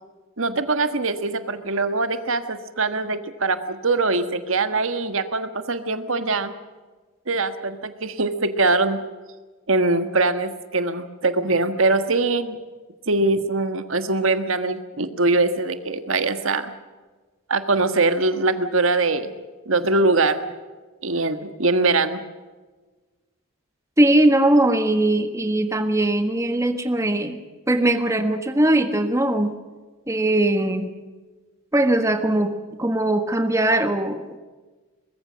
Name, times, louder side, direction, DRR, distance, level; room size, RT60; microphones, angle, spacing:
voice 1, 0.4-6.5 7.3-9.0 9.7-12.6 13.1-16.7 17.5-19.4 19.7-20.4 21.0-22.2, right 3 dB, 75° right, 10 dB, 1.6 m, -22 dB
voice 2, 24.0-27.4 27.7-29.5 30.1-30.9 31.7-34.4, right 1 dB, 15° right, 7 dB, 1.4 m, -20 dB
23.5 x 21.0 x 6.4 m, 1.3 s
head